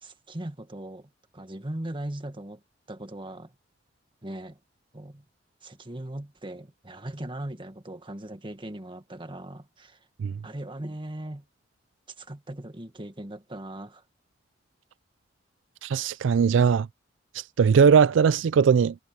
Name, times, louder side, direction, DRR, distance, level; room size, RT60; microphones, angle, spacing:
voice 1, 0.0-2.6 2.9-3.5 4.2-4.6 4.9-5.2 5.6-10.1 10.4-11.5 12.2-14.0, right 1 dB, 30° right, 1.8 m, -39 dB
voice 2, 15.8-16.9 17.3-18.9, right 6 dB, 80° right, 0.4 m, -20 dB
head